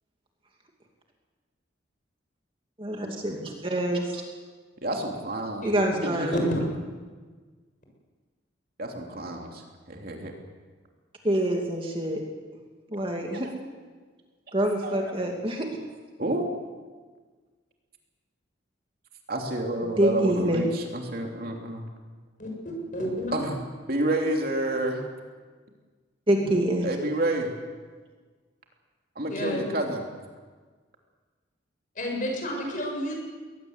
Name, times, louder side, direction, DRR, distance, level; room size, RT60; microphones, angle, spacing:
voice 1, 2.8-4.2 5.6-6.3 11.2-12.2 12.9-13.5 14.5-15.7 19.8-20.6 26.3-26.9, right 1 dB, 25° right, 1 dB, 2.4 m, -26 dB
voice 2, 4.8-6.4 8.8-9.6 9.9-10.3 14.8-14.9 16.2-16.5 19.3-20.7 20.9-21.9 23.3-23.6 23.9-25.0 26.8-27.5 29.2-30.0, right 1 dB, 50° right, 1 dB, 3.1 m, -29 dB
voice 3, 22.9-23.5 26.4-26.5 29.3-29.7 32.0-33.1, equal, 40° left, 1 dB, 6.9 m, -30 dB
21.5 x 19.5 x 8.1 m, 1.4 s
head